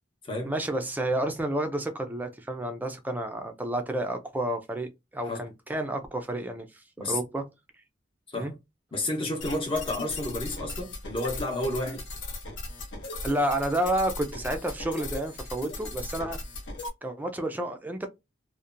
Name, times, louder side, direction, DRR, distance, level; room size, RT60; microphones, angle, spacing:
voice 1, 0.5-6.7 7.0-7.4 8.4-8.5 13.2-16.4 17.0-18.1, right 1 dB, 10° right, 0.4 m, -30 dB
voice 2, 8.9-12.0, left 1 dB, 25° left, 0.8 m, -31 dB
sound 1, 9.4-16.9, left 2 dB, 65° left, 0.8 m, -38 dB
2.7 x 2.1 x 2.4 m
head